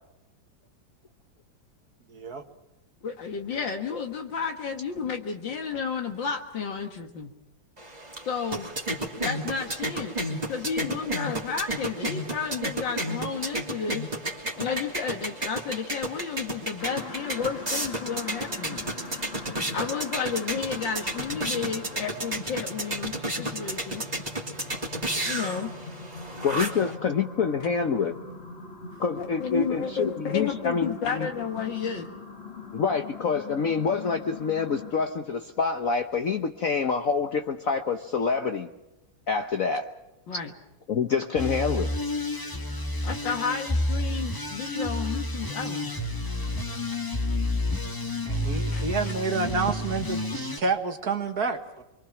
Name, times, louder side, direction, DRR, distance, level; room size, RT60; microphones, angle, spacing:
voice 1, 2.1-2.5 26.8-26.9 48.3-51.8, right 4 dB, 55° right, 7 dB, 2.0 m, -29 dB
voice 2, 3.0-7.3 8.3-8.7 9.2-10.1 10.5-14.1 14.6-18.9 19.7-24.0 25.2-25.7 29.2-32.1 40.3-40.5 43.0-45.9 48.7-48.8, left 6 dB, 75° left, 4 dB, 2.3 m, -32 dB
sound 1, 7.8-27.0, right 1 dB, 20° right, 3.0 m, -33 dB
sound 2, 16.8-35.0, left 3 dB, 35° left, 1.8 m, -42 dB
voice 3, 26.4-28.2 29.0-31.3 32.7-38.7 39.3-39.9 40.9-41.9, left 5 dB, 50° left, 6 dB, 1.3 m, -27 dB
sound 3, 41.4-50.6, left 1 dB, 10° left, 1.5 m, -30 dB
26.0 x 23.5 x 6.0 m, 0.98 s
omnidirectional pair, 2.1 m